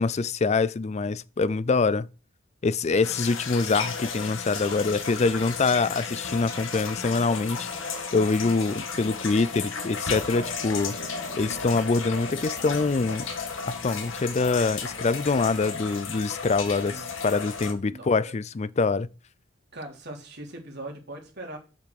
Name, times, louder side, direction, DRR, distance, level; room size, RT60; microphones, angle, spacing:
voice 1, 0.0-2.1 2.6-7.7 8.1-11.0 11.4-13.3 13.7-19.1, left 4 dB, 35° left, 0.4 m, -25 dB
sound 1, 3.0-17.7, left 5 dB, 70° left, 1.9 m, -34 dB
voice 2, 19.7-21.6, right 1 dB, 55° right, 3.6 m, -40 dB
8.4 x 6.0 x 6.6 m
head